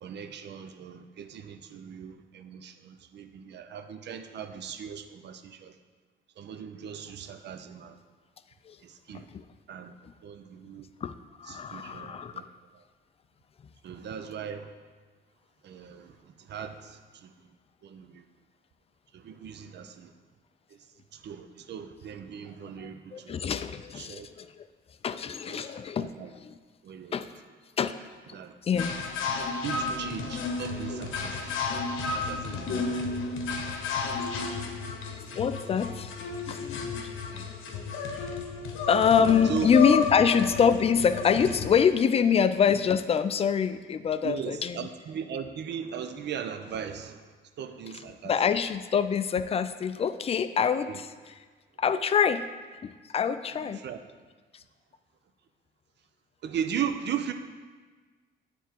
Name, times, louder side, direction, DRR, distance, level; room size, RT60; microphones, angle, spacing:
voice 1, 0.0-5.8 6.4-8.0 8.8-9.3 9.7-9.9 10.2-10.9 11.5-12.5 12.7-12.8 13.8-14.7 15.6-17.3 17.8-18.2 19.1-20.1 21.1-23.4 24.0-24.3 25.5-26.3 26.8-27.2 28.3-28.5 29.6-31.7 32.1-33.3 39.4-39.7 44.2-47.3 47.6-48.4 50.9-51.0 53.5-54.0 56.4-57.3, right 8 dB, 60° right, 8 dB, 0.6 m, -38 dB
voice 2, 11.0-12.3 22.8-24.7 25.0-26.1 26.4-26.5 27.1-27.3 27.8-28.0 28.6-28.9 34.5-34.6 35.2-36.1 36.5-37.4 38.9-44.9 48.2-51.1 51.8-52.5 52.8-53.8, left 7 dB, 30° left, 11 dB, 0.3 m, -25 dB
sound 1, 28.7-41.8, left 4 dB, 85° left, 0.8 m, -32 dB
9.2 x 3.5 x 4.5 m, 1.4 s
cardioid pair, 90°, 20 cm